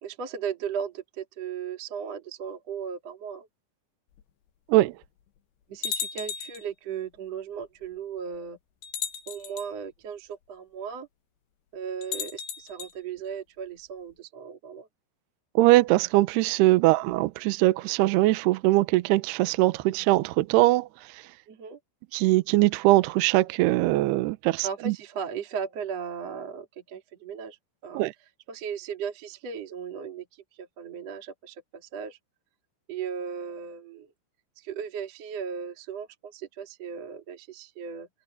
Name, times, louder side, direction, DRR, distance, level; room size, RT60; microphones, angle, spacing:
voice 1, 0.0-3.5 5.7-8.6 9.3-11.1 11.7-14.9 21.5-21.8 24.6-27.6 27.8-28.0 28.5-32.2 32.9-34.1 34.6-38.1, right 7 dB, 40° right, 2.8 m, -36 dB
sound 1, 4.2-4.3 5.0-5.1 5.8-6.7 7.8-7.9 8.8-9.7 12.0-12.9, left 8 dB, 65° left, 3.2 m, -34 dB
voice 2, 15.6-20.9 22.1-24.9 27.9-28.1, right 18 dB, 85° right, 2.3 m, -21 dB
omnidirectional pair, 5.8 m